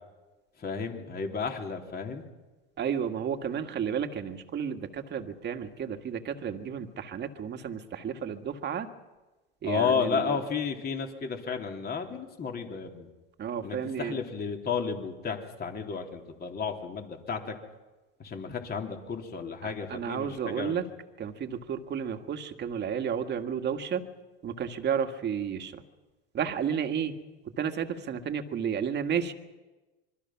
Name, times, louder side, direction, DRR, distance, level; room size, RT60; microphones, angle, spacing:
voice 1, 0.6-2.3 9.6-13.1 13.6-17.6 18.2-20.8, left 6 dB, 30° left, 3 dB, 3.6 m, -32 dB
voice 2, 2.8-8.9 9.6-10.4 13.4-14.2 19.6-20.9 21.2-24.1 24.4-25.8 26.3-27.1 27.5-29.3, right 7 dB, 35° right, 7 dB, 2.0 m, -32 dB
25.5 x 23.0 x 6.1 m, 1.2 s
hypercardioid pair, 100°, 30 cm